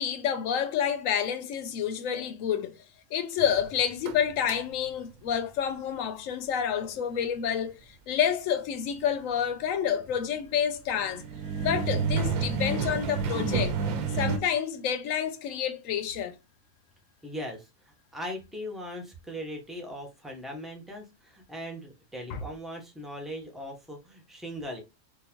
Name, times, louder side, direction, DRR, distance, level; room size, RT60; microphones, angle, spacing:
voice 1, 0.0-2.8 3.1-11.2 11.6-13.8 14.1-16.3 22.3-22.4, left 8 dB, 80° left, 1.0 m, -29 dB
sound 1, 3.4-4.9 10.9-14.4, right 5 dB, 90° right, 1.1 m, -29 dB
voice 2, 17.2-24.8, equal, ahead, 0.6 m, -39 dB
3.7 x 2.6 x 2.8 m
omnidirectional pair, 1.3 m